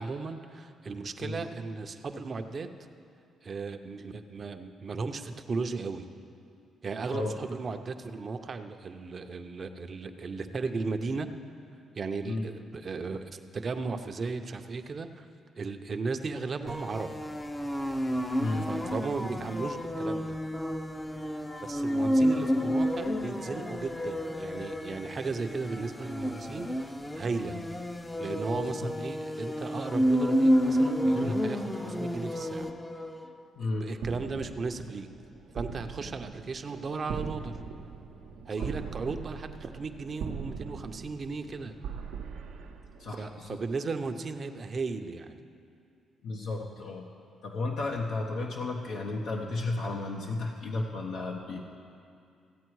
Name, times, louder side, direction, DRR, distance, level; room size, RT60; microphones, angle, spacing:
voice 1, 0.0-2.7 3.4-6.1 6.8-11.3 11.9-15.3 15.6-17.1 18.7-20.4 21.6-27.6 28.2-32.7 33.8-35.1 35.5-37.5 38.5-41.7 43.2-45.4, right 4 dB, 40° right, 8 dB, 0.7 m, -36 dB
sound 1, 16.7-33.3, equal, 10° left, 0.6 m, -30 dB
voice 2, 18.4-18.7 27.5-27.6 28.8-28.9 31.1-31.3 33.5-33.9 38.6-38.7 43.0-43.6 46.2-47.0 47.4-51.6, left 2 dB, 75° left, 0 dB, 0.8 m, -33 dB
sound 2, 34.0-43.5, right 6 dB, 85° right, 0.8 m, -41 dB
15.0 x 8.5 x 4.7 m, 2.5 s
cardioid pair, 90°, 0 cm